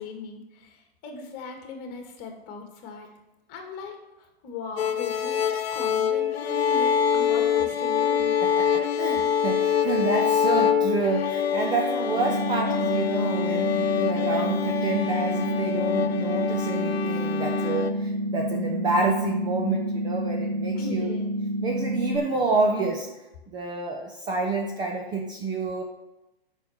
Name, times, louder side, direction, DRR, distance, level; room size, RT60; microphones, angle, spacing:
voice 1, 0.0-3.1 3.5-4.0 4.4-5.4 5.7-8.3 9.2-9.3 20.7-21.4, left 4 dB, 30° left, 3 dB, 2.2 m, -38 dB
sound 1, 4.8-17.9, left 8 dB, 80° left, 1.0 m, -25 dB
voice 2, 8.4-21.2 21.6-23.1 23.5-25.8, right 3 dB, 15° right, 2 dB, 0.7 m, -28 dB
sound 2, 12.2-22.2, equal, 45° right, 2.5 m, -29 dB
9.2 x 6.3 x 7.2 m, 1.0 s
hypercardioid pair, 140°, 31 cm